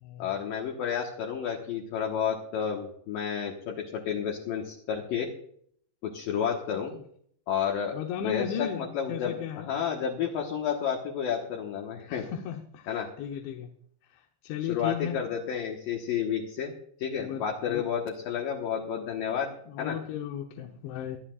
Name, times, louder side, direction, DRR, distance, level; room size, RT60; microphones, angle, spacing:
voice 1, 0.2-5.3 6.0-6.9 7.5-12.3 12.9-13.1 14.7-16.7 17.0-19.5 19.8-20.0, left 8 dB, 65° left, -1 dB, 2.6 m, -31 dB
voice 2, 7.9-9.7 12.1-13.7 14.4-15.2 17.2-17.4 17.7-17.9 19.7-21.2, left 8 dB, 85° left, 3 dB, 3.3 m, -35 dB
21.5 x 12.5 x 2.5 m, 0.64 s
omnidirectional pair, 5.2 m